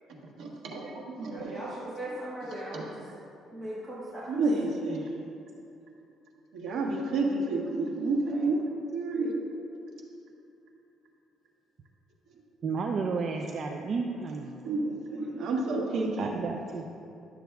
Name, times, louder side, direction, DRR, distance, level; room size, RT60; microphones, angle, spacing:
voice 1, 0.4-1.7 2.7-2.9 4.3-5.1 6.5-8.6 8.9-9.4 14.6-16.5, right 2 dB, 70° right, -2 dB, 1.4 m, -30 dB
voice 2, 1.3-3.0 3.5-4.3 15.2-15.5 15.8-16.0, right 1 dB, 5° right, -9 dB, 1.4 m, -39 dB
voice 3, 12.6-14.5 16.2-16.9, right 4 dB, 45° right, 3 dB, 0.4 m, -32 dB
11.5 x 7.2 x 2.3 m, 2.7 s
cardioid pair, 125°, 0 cm